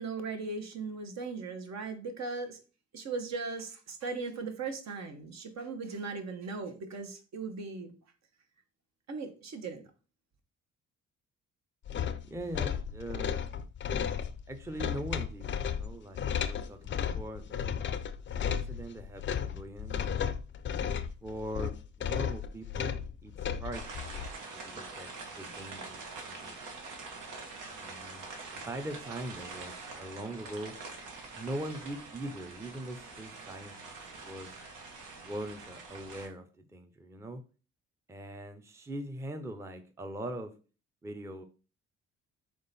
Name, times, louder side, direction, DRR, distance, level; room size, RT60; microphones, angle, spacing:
voice 1, 0.0-2.6 2.9-7.9 9.1-9.8, right 4 dB, 60° right, 6 dB, 1.0 m, -38 dB
sound 1, 11.9-24.3, left 8 dB, 40° left, 0.4 m, -34 dB
voice 2, 12.3-13.4 14.5-17.8 18.3-20.1 21.2-23.3 23.6-24.2 24.5-25.1 25.4-26.6 27.7-30.7 31.4-33.9 34.2-34.6 35.2-37.4 38.1-40.5 41.0-41.4, right 1 dB, 10° right, 6 dB, 0.5 m, -41 dB
sound 2, 23.7-36.3, right 3 dB, 85° right, 1.2 m, -45 dB
3.7 x 3.4 x 4.0 m, 0.36 s
cardioid pair, 90°, 30 cm